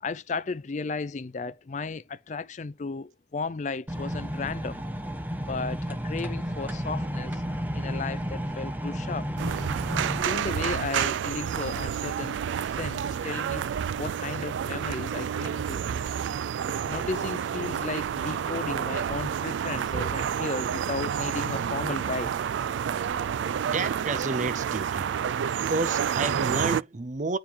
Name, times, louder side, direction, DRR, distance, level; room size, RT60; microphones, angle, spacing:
voice 1, 0.0-4.8 5.5-7.4 7.7-9.3 10.2-13.7 14.0-15.8 16.9-22.3, left 4 dB, 40° left, 0.4 m, -34 dB
sound 1, 3.9-10.2, equal, 10° right, 0.9 m, -32 dB
sound 2, 9.4-26.8, right 8 dB, 85° right, 0.3 m, -29 dB
voice 2, 23.6-25.1 25.6-27.4, right 3 dB, 40° right, 0.6 m, -30 dB
8.8 x 4.7 x 3.7 m
head